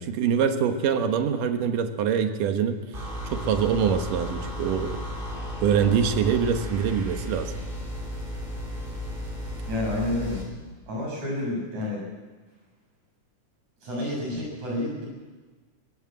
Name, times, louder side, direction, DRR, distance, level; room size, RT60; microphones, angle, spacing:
voice 1, 0.0-2.8 3.3-5.0 5.6-7.6, right 7 dB, 75° right, 7 dB, 2.9 m, -24 dB
sound 1, 2.9-10.5, equal, 15° right, 4.0 m, -34 dB
voice 2, 9.7-10.4 10.9-12.0 13.8-15.1, left 1 dB, 60° right, -2 dB, 8.5 m, -29 dB
22.5 x 15.0 x 7.7 m, 1.3 s
omnidirectional pair, 3.8 m